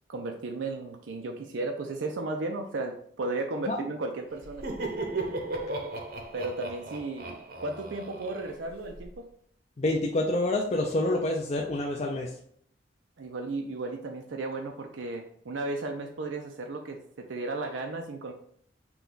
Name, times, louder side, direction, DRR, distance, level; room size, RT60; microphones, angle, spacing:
voice 1, 0.1-4.7 6.3-9.3 13.2-18.3, right 2 dB, 90° right, 3 dB, 0.5 m, -34 dB
Laughter, 4.4-9.1, right 2 dB, 55° right, 0.8 m, -36 dB
voice 2, 9.8-12.3, left 1 dB, 35° left, -1 dB, 0.4 m, -27 dB
5.8 x 2.3 x 3.8 m, 0.66 s
head